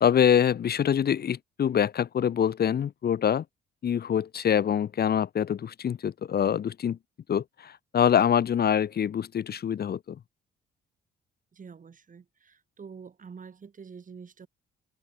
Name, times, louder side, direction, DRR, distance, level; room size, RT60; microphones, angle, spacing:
voice 1, 0.0-3.4 3.8-7.0 7.3-10.2, left 8 dB, 50° left, 1.4 m, -25 dB
voice 2, 11.5-14.5, right 6 dB, 40° right, 6.7 m, -46 dB
cardioid pair, 90°, 20 cm